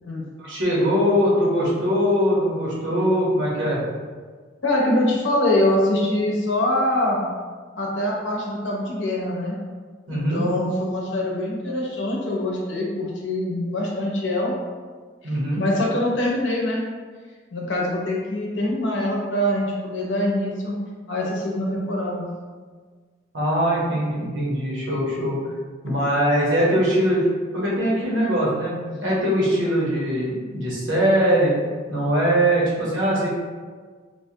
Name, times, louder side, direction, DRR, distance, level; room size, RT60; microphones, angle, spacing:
voice 1, 0.4-3.8 10.1-10.5 15.2-15.6 23.3-25.4 25.8-27.2 27.5-28.7 29.0-31.5 31.9-33.3, equal, 85° right, -6 dB, 1.0 m, -21 dB
voice 2, 4.6-7.2 7.8-9.6 10.1-14.5 15.5-16.8 17.5-20.8 21.1-22.3 25.9-26.0 28.9-29.0, left 1 dB, 80° left, -2 dB, 0.7 m, -24 dB
3.2 x 2.2 x 2.7 m, 1.5 s
head